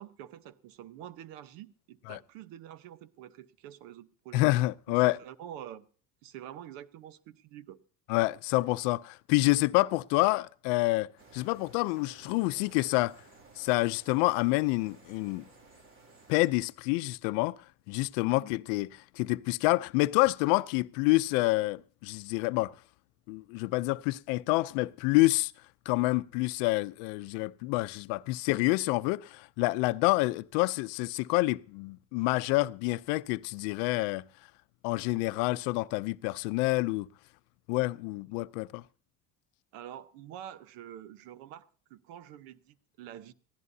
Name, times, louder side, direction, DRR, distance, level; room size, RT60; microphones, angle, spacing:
voice 1, 0.0-4.4 4.9-5.9 6.2-7.8 18.2-18.5 39.7-43.3, right 11 dB, 70° right, 1.1 m, -47 dB
voice 2, 4.3-5.2 8.1-13.1 13.6-15.4 16.3-17.6 17.9-22.7 23.3-25.5 25.9-34.2 34.8-37.1 37.7-38.8, left 21 dB, 85° left, 0.6 m, -28 dB
sound 1, 11.2-16.5, right 3 dB, 35° right, 2.7 m, -56 dB
22.0 x 15.5 x 2.8 m
cardioid pair, 160°, 36 cm